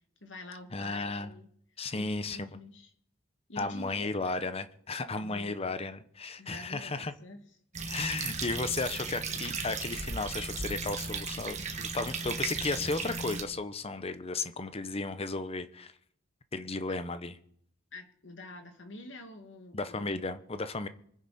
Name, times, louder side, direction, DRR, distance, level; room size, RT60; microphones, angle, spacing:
voice 1, 0.2-1.5 1.9-2.9 3.5-4.4 5.1-5.6 6.4-7.4 17.9-20.4, left 1 dB, 70° left, 5 dB, 2.3 m, -47 dB
voice 2, 0.7-1.3 1.8-2.6 3.6-7.1 7.9-15.9 16.5-17.4 19.7-20.9, left 3 dB, 30° left, 11 dB, 0.9 m, -34 dB
sound 1, 7.7-13.4, right 4 dB, 40° right, 1.9 m, -36 dB
25.0 x 9.9 x 4.3 m, 0.66 s
head